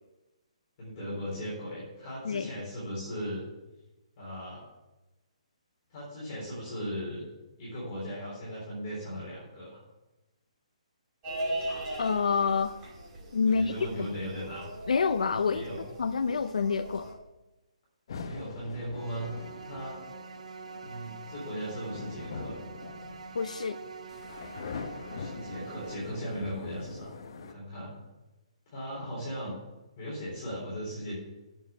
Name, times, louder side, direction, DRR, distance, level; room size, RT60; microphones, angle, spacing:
voice 1, 0.8-3.4 4.2-4.6 5.9-7.2 7.6-9.8 13.5-14.7 15.5-15.8 18.2-19.3 19.6-20.0 20.8-22.6 25.1-28.0 28.7-29.5 30.0-31.2, equal, 20° left, -7 dB, 3.8 m, -37 dB
sound 1, 11.2-17.1, right 1 dB, 15° right, 2.6 m, -39 dB
voice 2, 12.0-12.8 13.3-14.1 14.9-15.6 16.0-17.2 23.3-23.8, left 5 dB, 75° left, 10 dB, 0.6 m, -27 dB
sound 2, 18.1-27.5, left 5 dB, 40° left, 0.8 m, -44 dB
sound 3, 18.9-26.0, right 4 dB, 70° right, 1.0 m, -45 dB
7.8 x 7.1 x 8.2 m, 1.0 s
hypercardioid pair, 175°, 4 cm